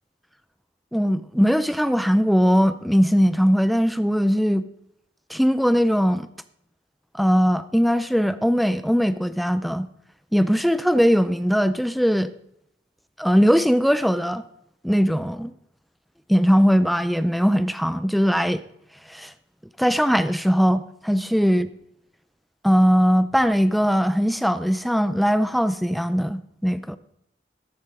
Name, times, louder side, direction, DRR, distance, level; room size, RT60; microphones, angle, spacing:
voice 1, 0.9-4.6 5.3-6.3 7.1-9.9 10.3-12.3 13.2-14.4 14.8-15.5 16.3-18.6 19.1-19.3 19.8-21.7 22.6-27.0, equal, ahead, 0.4 m, -20 dB
13.5 x 10.5 x 3.7 m
head